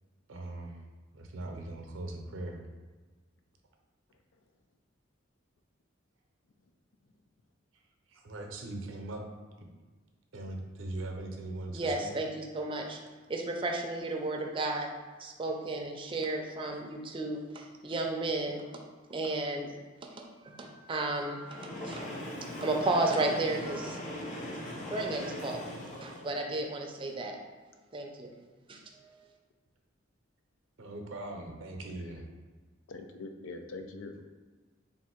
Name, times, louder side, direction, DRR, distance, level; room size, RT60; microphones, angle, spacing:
voice 1, 0.3-0.7 1.1-2.6 8.1-9.2 10.3-12.1 30.8-32.3, right 2 dB, 80° right, 2 dB, 0.6 m, -40 dB
voice 2, 11.7-13.0 13.3-14.9 15.2-18.6 19.1-19.7 20.1-22.0 22.4-24.0 24.9-25.7 26.0-27.4 27.9-28.3 28.7-28.8, right 2 dB, 25° right, 1 dB, 0.5 m, -33 dB
Train, 21.4-26.4, equal, 40° left, 0.8 m, -40 dB
voice 3, 32.9-34.2, left 3 dB, 85° left, 6 dB, 0.4 m, -43 dB
3.6 x 2.5 x 4.3 m, 1.3 s
head